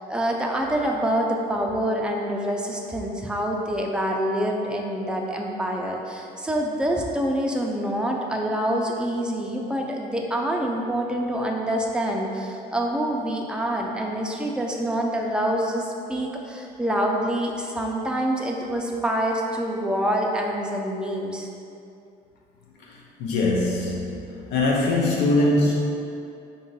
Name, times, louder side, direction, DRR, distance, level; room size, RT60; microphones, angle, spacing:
voice 1, 0.1-21.5, right 1 dB, 5° right, 0 dB, 0.5 m, -26 dB
voice 2, 22.9-24.1 24.5-25.8, left 2 dB, 85° left, -2 dB, 0.6 m, -22 dB
5.3 x 2.5 x 3.9 m, 2.6 s
cardioid pair, 110°, 17 cm